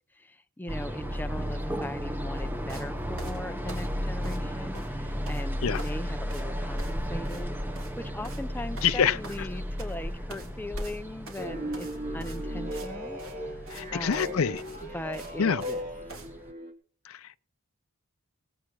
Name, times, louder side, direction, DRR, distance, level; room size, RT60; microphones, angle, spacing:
voice 1, 0.2-7.6 8.0-11.9 12.1-13.2 13.5-13.6 13.9-14.6 14.9-15.8, left 1 dB, 10° left, 0.7 m, -39 dB
sound 1, 0.7-16.5, equal, 10° right, 1.0 m, -35 dB
sound 2, 2.7-2.9 3.2-4.5 4.7-5.4 5.7-6.0 6.3-6.5 6.8-7.0 7.3-7.4 7.7-8.0 8.2-8.5 8.8-10.0 10.3-10.5 10.8-12.9 13.2-13.4 13.7-13.8 14.1-14.3 14.6-15.8 16.1-16.3, right 3 dB, 65° right, 3.5 m, -46 dB
voice 2, 8.8-9.5 13.7-14.6 15.4-15.6 17.1-17.4, left 7 dB, 70° left, 0.5 m, -26 dB
sound 3, 11.4-16.7, equal, 40° right, 2.7 m, -37 dB
19.0 x 8.8 x 4.6 m
head